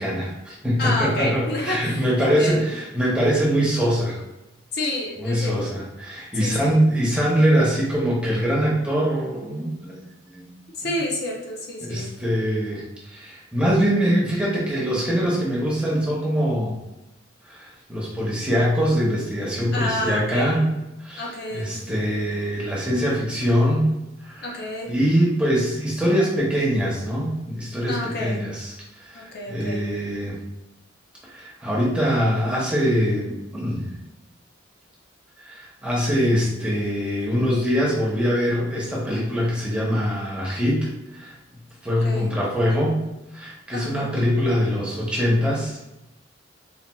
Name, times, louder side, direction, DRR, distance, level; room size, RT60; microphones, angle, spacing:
voice 1, 0.0-4.2 5.2-9.9 10.3-10.4 10.8-10.9 11.8-16.7 17.5-20.6 21.0-23.9 24.2-28.7 29.0-30.4 31.2-33.9 35.4-41.4 41.8-43.0 43.3-45.8, equal, 5° right, -5 dB, 0.7 m, -23 dB
voice 2, 0.8-2.7 4.7-5.8 6.4-6.7 10.7-12.1 19.7-20.6 21.2-21.7 24.4-24.9 27.9-28.4 29.1-29.8 41.9-42.3 43.7-44.2, left 1 dB, 55° left, -1 dB, 0.6 m, -29 dB
4.1 x 2.2 x 2.2 m, 0.94 s
head